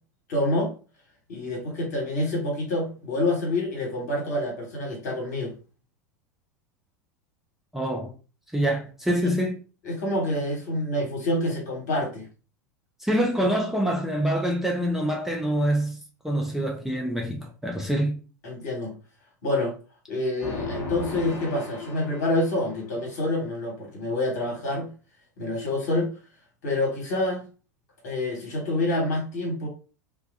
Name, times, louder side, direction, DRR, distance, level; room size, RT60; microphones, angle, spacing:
voice 1, 0.3-0.7 1.3-5.5 9.8-12.3 18.4-18.9 19.4-19.7 20.1-24.9 25.4-26.1 26.6-27.4 28.0-29.7, left 1 dB, 60° left, 1.2 m, -27 dB
voice 2, 7.7-8.1 8.5-9.6 13.0-16.0 16.2-18.2, right 1 dB, 5° right, 0.4 m, -25 dB
sound 1, 20.4-22.8, left 4 dB, 25° left, 0.9 m, -34 dB
2.2 x 2.2 x 2.5 m
figure-of-eight pair, 80°, 10 cm